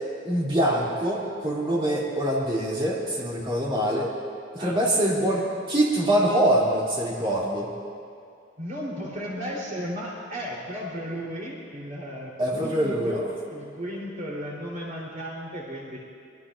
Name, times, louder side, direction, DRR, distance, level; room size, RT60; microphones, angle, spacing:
voice 1, 0.2-4.1 4.5-7.7 12.4-13.2, right 1 dB, 25° right, -4 dB, 2.5 m, -24 dB
voice 2, 8.6-16.0, equal, 45° right, -4 dB, 3.3 m, -35 dB
24.5 x 21.5 x 2.5 m, 2.4 s
head